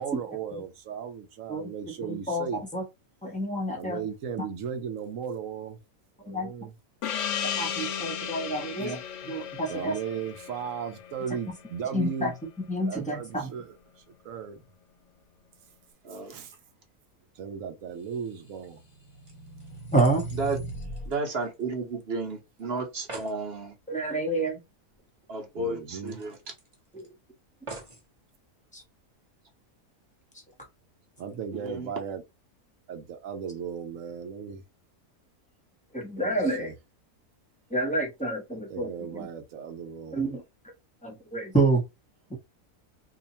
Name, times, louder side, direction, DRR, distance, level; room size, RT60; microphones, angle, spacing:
voice 1, 0.0-2.6 3.7-5.8 6.2-6.7 8.2-8.4 9.7-12.4 12.9-14.6 16.1-16.5 17.3-18.8 25.5-26.2 31.2-32.2 32.9-34.6 36.2-36.7 38.7-40.3, right 7 dB, 70° right, 1.0 m, -36 dB
voice 2, 2.1-2.9 3.2-4.0 6.3-6.7 7.4-8.9 9.3-9.9 11.9-12.3 12.7-13.5 19.9-20.2 23.9-24.6 26.9-27.1 28.7-28.8 35.9-36.7 37.7-39.3 40.1-40.4 41.0-41.8 42.3-42.4, right 2 dB, 5° left, 1.0 m, -28 dB
Gong, 7.0-12.1, left 8 dB, 65° left, 0.8 m, -35 dB
sound 1, 18.2-21.1, right 2 dB, 35° left, 0.8 m, -39 dB
sound 2, 19.3-21.9 22.2-22.3 22.6-22.7 22.9-23.4 24.9-25.0 25.3-25.4 26.1-27.1 27.7-28.1 28.8-28.9, right 3 dB, 25° right, 1.0 m, -46 dB
voice 3, 21.0-23.7 25.3-26.4 31.5-31.9, right 3 dB, 45° right, 1.1 m, -33 dB
2.7 x 2.4 x 4.1 m
omnidirectional pair, 1.6 m